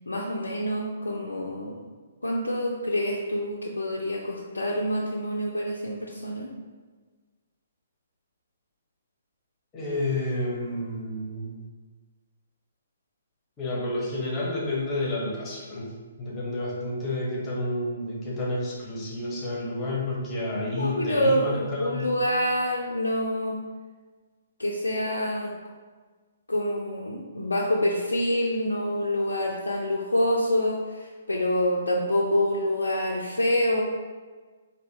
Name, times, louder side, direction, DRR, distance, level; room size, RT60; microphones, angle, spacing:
voice 1, 0.1-1.8 2.2-6.5 20.8-23.6 24.6-25.5 26.5-33.8, left 1 dB, 80° left, -2 dB, 0.4 m, -26 dB
voice 2, 9.7-11.6 13.6-15.9 16.2-22.1, left 1 dB, 20° left, -5 dB, 1.1 m, -30 dB
4.0 x 2.6 x 3.4 m, 1.4 s
figure-of-eight pair, 125°, 0 cm